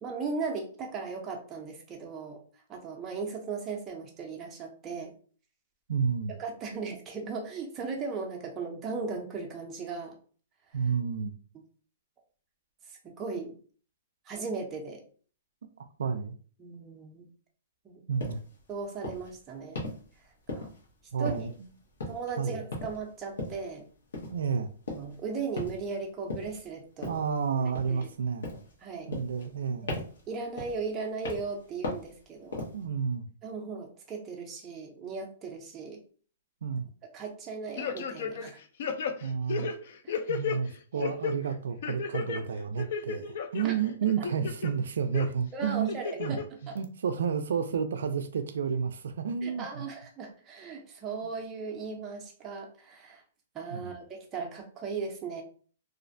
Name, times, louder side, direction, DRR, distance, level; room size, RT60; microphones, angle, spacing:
voice 1, 0.0-2.4 2.7-5.1 6.3-10.2 12.9-13.5 14.3-15.0 16.6-17.3 17.8-18.0 18.7-19.9 20.5-20.7 21.2-21.5 22.1-23.9 24.9-27.2 27.9-28.1 28.8-29.1 29.8-32.6 33.4-36.0 37.1-38.6 40.0-40.1 40.9-41.0 43.6-43.8 45.5-46.4 46.7-46.8 49.4-53.2 53.5-55.4, right 4 dB, 15° right, 0.5 m, -37 dB
voice 2, 5.9-6.3 10.7-11.3 16.0-16.3 18.1-18.4 21.1-21.7 22.4-22.6 24.3-24.7 27.1-28.5 29.1-29.9 32.7-33.3 36.6-36.9 39.2-39.7 40.3-46.4 46.7-49.8 53.7-53.9, right 6 dB, 80° right, 0.3 m, -31 dB
sound 1, 18.2-18.4 19.0-19.3 19.7-20.0 20.5-20.9 21.3-21.7 22.0-22.3 22.7-23.0 23.4-23.7 24.1-24.4 24.9-25.2 25.6-25.9 26.3-26.6 27.0-27.3 27.7-28.1 28.4-28.7 29.1-29.6 29.9-30.2 30.6-30.9 31.2-31.6 31.8-32.1 32.5-32.8, left 2 dB, 80° left, 0.9 m, -37 dB
sound 2, 37.8-38.5 38.8-40.6 41.0-41.3 41.8-42.4 42.8-43.6 44.1-44.7 45.1-45.3 45.9-46.4 46.8-46.9, left 6 dB, 50° left, 0.3 m, -32 dB
2.4 x 2.1 x 2.5 m
hypercardioid pair, 170°, 0 cm